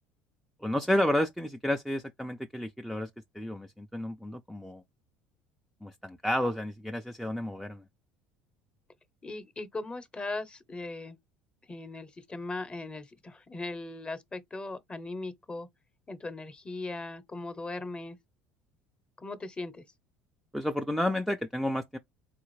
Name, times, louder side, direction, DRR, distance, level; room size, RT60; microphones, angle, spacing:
voice 1, 0.6-3.1 3.3-4.8 5.8-7.8 20.5-22.0, left 1 dB, ahead, 0.3 m, -31 dB
voice 2, 9.2-11.2 11.7-15.7 16.1-18.2 19.2-19.8, left 2 dB, 20° left, 0.7 m, -38 dB
3.9 x 2.4 x 3.1 m
supercardioid pair, 85°, 5 cm